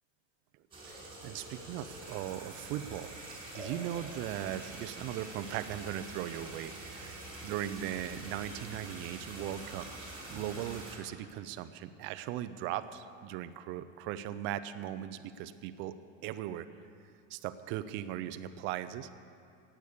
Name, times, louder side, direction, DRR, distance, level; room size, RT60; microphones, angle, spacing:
sound 1, 0.7-11.0, right 2 dB, 15° right, 4.2 m, -46 dB
voice 1, 0.8-15.9 16.2-16.7 17.3-19.1, right 12 dB, 30° right, 12 dB, 0.5 m, -39 dB
16.0 x 8.9 x 8.5 m, 2.5 s
supercardioid pair, 160°, 38 cm